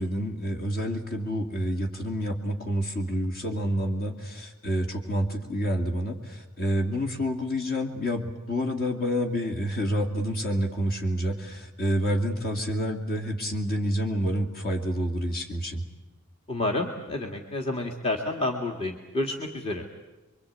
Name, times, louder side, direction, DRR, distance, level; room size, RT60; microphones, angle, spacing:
voice 1, 0.0-15.8, equal, 45° left, 4 dB, 2.6 m, -28 dB
voice 2, 16.5-19.8, left 2 dB, 25° left, 1 dB, 1.9 m, -29 dB
25.0 x 23.5 x 8.5 m, 1.1 s
head